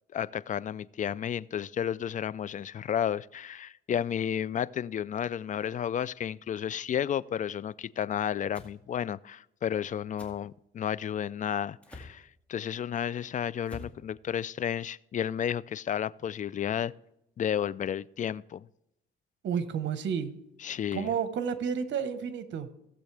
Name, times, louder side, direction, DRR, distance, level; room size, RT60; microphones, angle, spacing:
voice 1, 0.1-16.9 17.4-18.7 20.6-21.1, left 9 dB, 40° left, 20 dB, 0.4 m, -32 dB
sound 1, 8.5-8.7 10.2-10.4 11.8-12.2 13.6-14.0, left 2 dB, 5° left, 2.1 m, -45 dB
voice 2, 19.4-20.3 20.9-22.7, right 7 dB, 70° right, 11 dB, 1.2 m, -31 dB
17.0 x 7.4 x 3.4 m, 0.83 s
cardioid pair, 90°, 20 cm